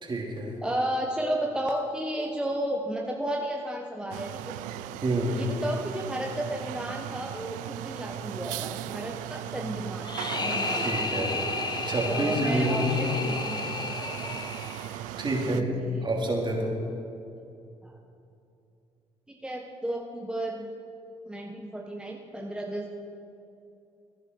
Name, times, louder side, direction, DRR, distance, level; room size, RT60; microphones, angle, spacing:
voice 1, 0.0-0.5 5.0-5.4 10.8-12.9 15.2-16.8, right 1 dB, 35° right, 0 dB, 3.2 m, -28 dB
voice 2, 0.6-4.6 5.4-10.1 10.4-10.9 12.0-14.0 15.5-16.0 17.8-17.9 19.4-20.7 21.3-22.9, right 1 dB, 5° right, 0 dB, 1.4 m, -33 dB
sound 1, 4.1-15.6, right 13 dB, 85° right, 0.4 m, -37 dB
sound 2, 10.0-15.2, left 3 dB, 35° left, 1.3 m, -32 dB
18.0 x 10.5 x 4.8 m, 2.6 s
supercardioid pair, 60°, 13 cm